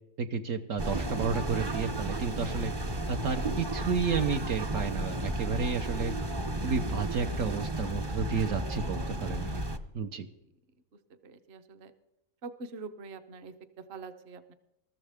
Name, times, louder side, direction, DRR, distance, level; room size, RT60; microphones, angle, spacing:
voice 1, 0.2-2.7 3.1-6.1 6.6-9.6 9.9-10.3, right 5 dB, 70° right, 5 dB, 1.2 m, -31 dB
sound 1, 0.8-9.8, right 1 dB, 25° right, 0.6 m, -33 dB
voice 2, 10.9-11.9 12.4-14.5, right 4 dB, 50° right, 8 dB, 1.1 m, -45 dB
21.0 x 14.0 x 3.5 m, 0.86 s
omnidirectional pair, 1.5 m